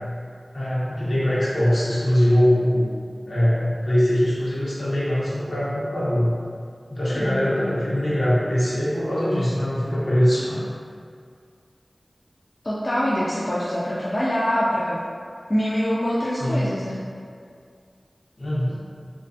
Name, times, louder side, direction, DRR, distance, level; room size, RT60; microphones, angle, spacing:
voice 1, 0.5-2.9 3.3-6.3 6.9-10.6 16.4-16.8 18.4-18.8, equal, 70° left, -10 dB, 0.8 m, -22 dB
voice 2, 7.1-7.8 12.6-15.0 15.5-17.1, equal, 40° left, -8 dB, 0.3 m, -25 dB
2.3 x 2.3 x 2.5 m, 2.2 s
wide cardioid pair, 55°, 0 cm